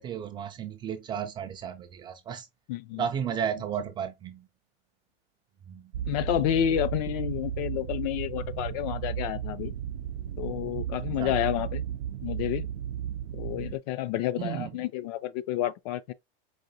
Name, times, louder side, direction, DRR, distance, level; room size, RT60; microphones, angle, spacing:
voice 1, 0.0-2.5 2.9-4.5 5.7-5.9 11.2-11.4 14.4-14.7, right 8 dB, 15° right, 0.3 m, -33 dB
voice 2, 2.7-3.0 6.1-9.7 10.4-11.8 12.2-12.6 13.3-16.1, left 12 dB, 45° left, 0.4 m, -30 dB
sound 1, 5.9-13.8, right 10 dB, 90° right, 0.5 m, -34 dB
4.9 x 2.6 x 2.7 m
supercardioid pair, 135°, 29 cm